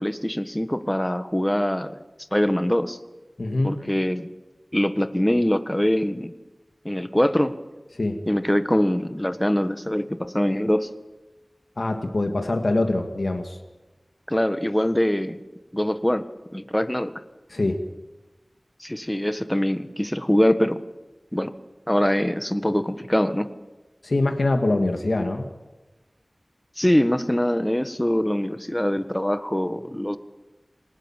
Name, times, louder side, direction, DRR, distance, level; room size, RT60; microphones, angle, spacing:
voice 1, 0.0-1.9 2.3-3.0 3.6-4.3 4.7-6.3 6.8-7.5 8.3-10.9 14.3-15.4 15.7-16.2 16.5-17.1 18.8-20.8 21.3-21.5 21.9-23.5 26.8-30.2, left 1 dB, 15° left, 11 dB, 1.5 m, -23 dB
voice 2, 3.4-3.8 8.0-8.2 11.8-13.6 17.5-17.8 24.0-25.5, left 2 dB, 75° left, 5 dB, 2.1 m, -24 dB
25.5 x 19.0 x 7.5 m, 1.1 s
wide cardioid pair, 45°, 0 cm